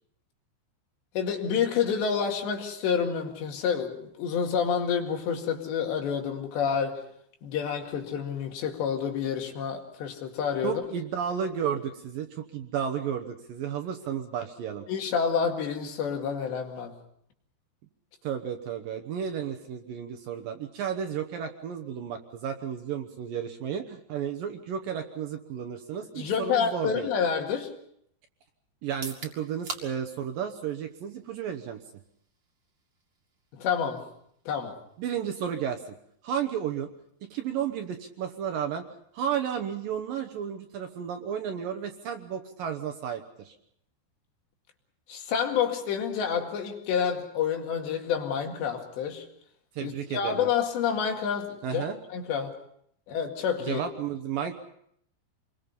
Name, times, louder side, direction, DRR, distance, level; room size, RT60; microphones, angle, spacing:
voice 1, 1.2-7.0 7.4-10.8 14.9-17.0 26.1-27.7 33.6-34.0 34.5-34.7 45.1-49.2 49.8-51.9 52.1-52.5 53.1-53.8, left 7 dB, 80° left, 3 dB, 4.3 m, -28 dB
voice 2, 10.6-14.9 18.2-27.1 28.8-31.8 35.0-35.9 36.2-36.9 37.2-38.8 39.1-43.6 49.8-50.5 51.6-52.0 53.6-54.6, right 8 dB, 70° right, 5 dB, 2.4 m, -33 dB
sound 1, 28.9-42.7, right 3 dB, 35° right, 2.4 m, -49 dB
27.5 x 22.0 x 5.4 m, 0.70 s
omnidirectional pair, 5.0 m